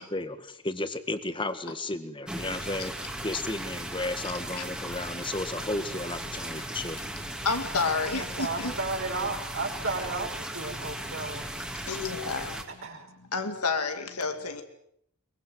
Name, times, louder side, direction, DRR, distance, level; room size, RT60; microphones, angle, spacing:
voice 1, 0.0-7.0, left 2 dB, 20° left, 1.8 m, -33 dB
sound 1, 2.3-12.6, right 1 dB, 5° right, 2.7 m, -37 dB
voice 2, 7.4-8.7 11.7-12.6 13.3-14.6, left 4 dB, 85° left, 2.5 m, -30 dB
voice 3, 8.2-11.4 12.8-13.1, right 3 dB, 60° right, 5.1 m, -33 dB
23.5 x 23.0 x 7.8 m
head